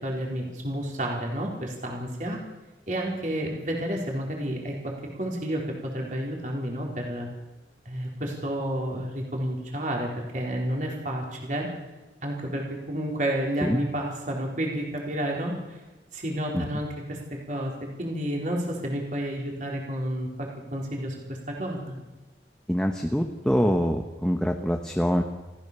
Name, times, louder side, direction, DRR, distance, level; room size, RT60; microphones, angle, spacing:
voice 1, 0.0-2.4 2.9-4.9 5.2-7.3 7.8-11.7 12.2-15.5 16.1-17.7 18.0-21.2 21.5-22.0, right 1 dB, 45° right, -1 dB, 4.5 m, -30 dB
voice 2, 22.7-25.2, equal, 5° left, 3 dB, 1.2 m, -24 dB
29.5 x 14.5 x 7.0 m, 1.1 s
head